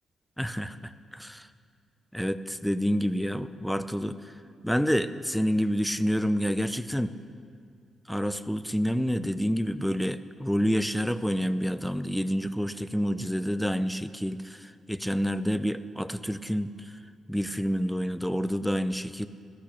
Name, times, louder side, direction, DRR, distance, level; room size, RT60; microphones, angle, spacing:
voice 1, 0.4-1.5 2.1-4.3 4.6-7.1 8.1-17.0 17.3-19.3, equal, ahead, 12 dB, 0.5 m, -28 dB
14.5 x 13.5 x 6.6 m, 2.4 s
cardioid pair, 115°, 0 cm